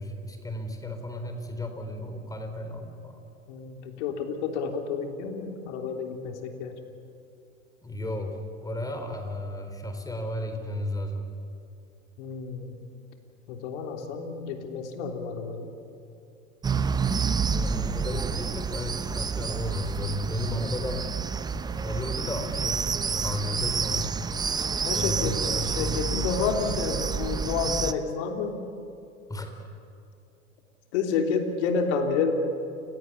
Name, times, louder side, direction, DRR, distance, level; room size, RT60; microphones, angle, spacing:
voice 1, 0.0-3.2 7.8-11.2 17.5-21.0 21.8-22.9 23.2-24.1 24.9-26.0 29.3-29.7, left 1 dB, 10° left, 6 dB, 3.8 m, -33 dB
voice 2, 3.5-6.8 12.2-12.8 13.5-15.7 24.8-28.6 30.9-32.3, left 5 dB, 55° left, 4 dB, 3.4 m, -30 dB
sound 1, 16.6-27.9, right 5 dB, 10° right, 0.5 m, -29 dB
30.0 x 17.0 x 8.7 m, 2.6 s
hypercardioid pair, 105°, 40 cm